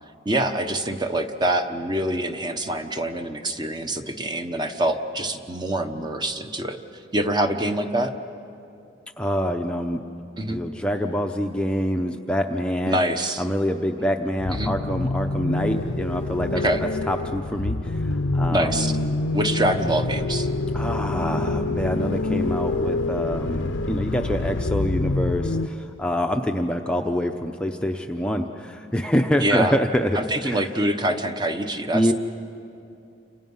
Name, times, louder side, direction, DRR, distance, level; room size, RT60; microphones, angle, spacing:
voice 1, 0.2-6.8 7.1-8.1 10.4-10.6 12.8-13.4 14.5-14.7 16.6-16.8 18.5-18.9 19.3-20.5 29.4-29.8 30.1-32.1, right 1 dB, 25° right, 6 dB, 1.0 m, -25 dB
voice 2, 9.2-10.0 10.5-13.0 13.4-19.1 20.7-30.2 30.4-30.6 31.9-32.1, equal, 5° left, 3 dB, 0.7 m, -26 dB
sound 1, 14.4-25.7, left 2 dB, 85° left, 0.7 m, -26 dB
29.0 x 27.0 x 5.6 m, 2.7 s
head